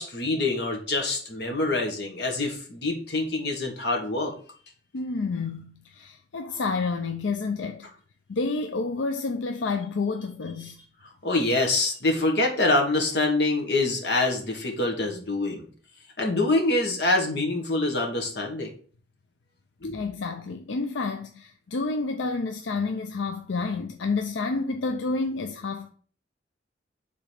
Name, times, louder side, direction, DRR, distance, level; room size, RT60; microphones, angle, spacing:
voice 1, 0.0-4.3 11.2-15.6 16.2-18.7 19.8-20.0, left 2 dB, 65° left, 1.6 m, -25 dB
voice 2, 4.9-7.9 8.3-10.8 19.9-25.9, left 3 dB, 90° left, 0.5 m, -29 dB
5.1 x 4.0 x 5.8 m
head